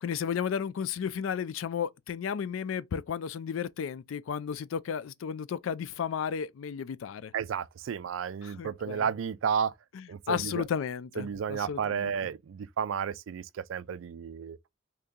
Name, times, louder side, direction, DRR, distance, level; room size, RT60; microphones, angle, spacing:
voice 1, 0.0-7.3 8.4-9.1 9.9-12.1, left 7 dB, 85° left, 0.4 m, -33 dB
voice 2, 7.3-9.7 10.1-10.6 11.2-14.6, right 7 dB, 80° right, 0.4 m, -32 dB
2.9 x 2.6 x 3.6 m
head